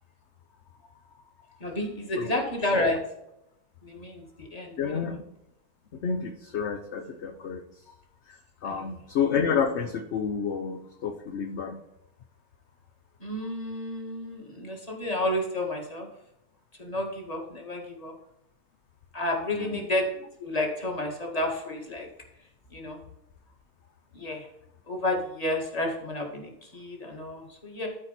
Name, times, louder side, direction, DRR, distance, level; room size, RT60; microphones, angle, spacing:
voice 1, 1.6-3.0 3.8-5.1 8.7-9.0 13.2-16.1 16.8-18.1 19.1-22.1 22.7-23.0 24.1-24.5 24.9-27.9, left 1 dB, 25° left, 0 dB, 2.0 m, -31 dB
voice 2, 4.8-5.2 5.9-7.6 8.3-11.8 19.6-19.8, left 6 dB, 55° left, 5 dB, 0.9 m, -30 dB
13.0 x 4.6 x 4.2 m, 0.85 s
omnidirectional pair, 1.6 m